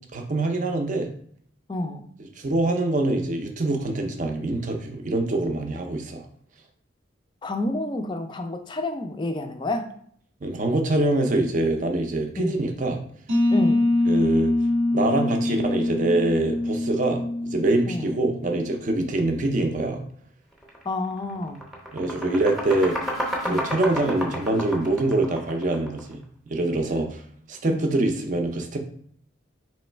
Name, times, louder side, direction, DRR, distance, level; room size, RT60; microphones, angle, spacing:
voice 1, 0.1-1.1 2.4-6.3 10.4-13.0 14.1-14.5 14.9-20.0 21.9-23.0 23.5-26.2 26.5-27.2 27.5-28.8, right 2 dB, 40° right, 4 dB, 0.5 m, -24 dB
voice 2, 1.7-2.0 7.4-9.9 12.4-12.6 13.5-13.8 17.9-18.1 20.9-21.6 23.4-23.7 27.6-27.9, left 2 dB, 25° left, 6 dB, 0.4 m, -29 dB
sound 1, 13.3-18.9, left 2 dB, 85° right, 1.2 m, -24 dB
sound 2, 20.6-20.8 21.2-26.1, equal, ahead, 0.7 m, -31 dB
3.1 x 3.0 x 4.3 m, 0.62 s
head